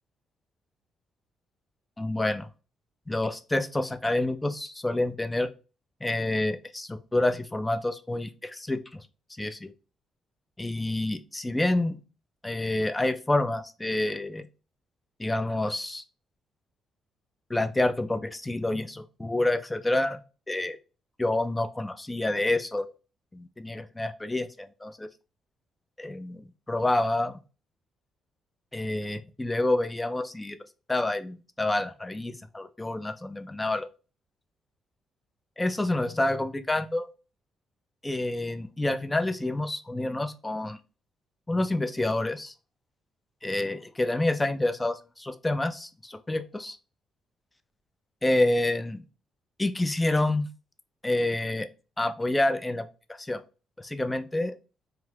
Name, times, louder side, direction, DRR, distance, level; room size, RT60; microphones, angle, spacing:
voice 1, 2.0-2.5 3.1-5.5 6.0-9.0 9.4-9.7 10.6-12.0 12.4-14.5 15.2-16.0 17.5-20.2 20.5-20.8 21.2-22.9 23.3-25.1 26.0-27.4 28.7-30.6 30.9-33.9 35.6-37.1 38.0-40.8 41.5-42.5 43.4-46.8 48.2-49.0 49.6-50.5 51.0-51.7 52.0-52.8 53.1-53.4 53.8-54.5, left 2 dB, 15° left, 11 dB, 0.4 m, -28 dB
2.9 x 2.2 x 3.3 m, 0.33 s
cardioid pair, 90°, 0 cm